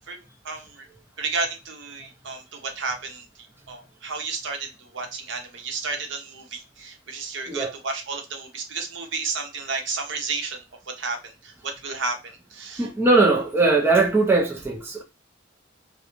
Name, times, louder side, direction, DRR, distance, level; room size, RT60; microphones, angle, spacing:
voice 1, 0.4-0.9 1.2-10.6 11.0-12.9, right 4 dB, 70° right, 0.7 m, -32 dB
voice 2, 12.8-15.0, right 3 dB, 10° right, 0.3 m, -20 dB
2.4 x 2.1 x 2.9 m
head